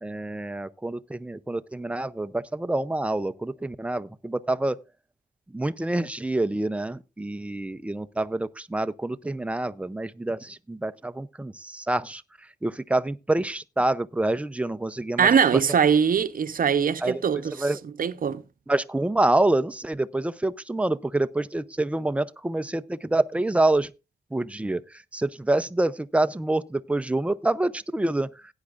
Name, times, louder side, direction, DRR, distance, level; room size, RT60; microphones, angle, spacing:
voice 1, 0.0-4.8 5.5-12.2 12.6-15.3 17.0-17.8 18.7-23.9 24.3-24.8 25.1-28.3, right 2 dB, 5° right, 0.5 m, -27 dB
voice 2, 15.2-17.5 17.8-18.4, right 7 dB, 55° right, 0.8 m, -22 dB
16.5 x 9.7 x 2.4 m
wide cardioid pair, 110°, 17 cm